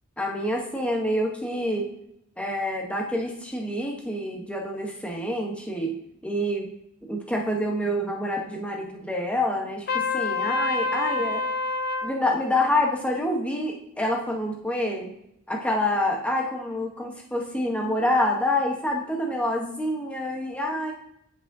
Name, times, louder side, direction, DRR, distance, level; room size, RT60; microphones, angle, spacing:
voice 1, 0.2-1.9 2.4-6.0 6.2-6.7 7.1-11.5 12.0-15.1 15.5-20.9, left 1 dB, 5° left, 0 dB, 0.9 m, -27 dB
Trumpet, 9.9-12.1, left 3 dB, 45° left, 0.5 m, -26 dB
10.5 x 5.0 x 2.7 m, 0.77 s
head